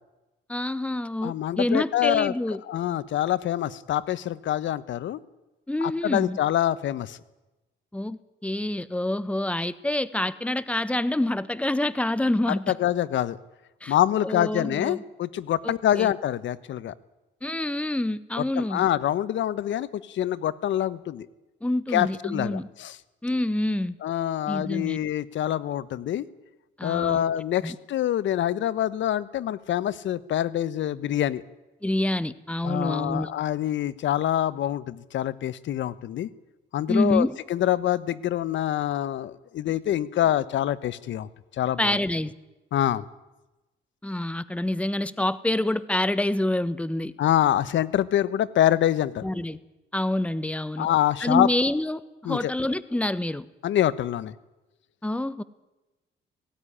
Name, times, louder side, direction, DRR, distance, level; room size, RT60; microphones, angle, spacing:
voice 1, 0.5-2.6 5.7-6.4 7.9-12.7 13.8-13.9 14.2-15.0 15.6-16.1 17.4-18.9 21.6-22.7 23.2-23.9 24.5-25.0 26.8-27.2 27.6-27.8 31.8-33.3 36.9-37.4 41.8-42.3 44.0-47.1 49.2-49.6 49.9-50.9 51.2-53.5 55.0-55.4, left 1 dB, 5° left, 16 dB, 1.0 m, -27 dB
voice 2, 1.2-2.3 2.7-5.2 5.8-7.2 12.7-13.4 13.9-16.9 18.6-21.3 21.9-23.0 24.0-26.2 26.8-31.4 32.6-36.3 36.7-41.3 41.6-42.0 42.7-43.0 47.2-49.3 50.8-51.5 52.2-52.5 53.6-54.3, left 11 dB, 70° left, 17 dB, 1.0 m, -25 dB
18.5 x 16.0 x 10.0 m, 1.1 s
cardioid pair, 90°, 20 cm